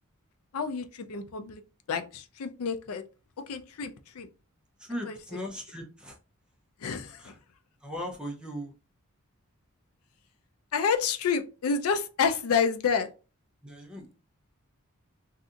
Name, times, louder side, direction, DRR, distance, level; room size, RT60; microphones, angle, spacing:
voice 1, 0.5-1.6 1.9-3.0 3.5-4.3 5.1-5.2 6.8-7.3 10.7-13.1, left 6 dB, 75° left, 8 dB, 0.4 m, -28 dB
voice 2, 4.8-6.2 7.0-7.4 7.8-8.7 13.6-14.2, equal, 5° right, 0 dB, 0.6 m, -38 dB
2.7 x 2.5 x 3.6 m, 0.32 s
head